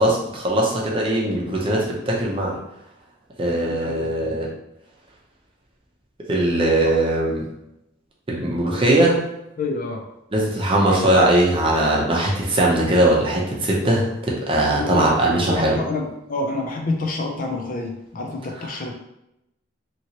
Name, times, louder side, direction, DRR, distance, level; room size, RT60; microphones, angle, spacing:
voice 1, 0.0-2.6 3.4-4.5 6.3-7.5 8.3-9.2 10.3-15.8, right 1 dB, 30° right, -3 dB, 0.7 m, -20 dB
voice 2, 3.4-4.4 8.6-8.8 9.6-10.0 14.7-18.9, left 3 dB, 45° left, 2 dB, 0.5 m, -28 dB
2.9 x 2.9 x 2.8 m, 0.85 s
head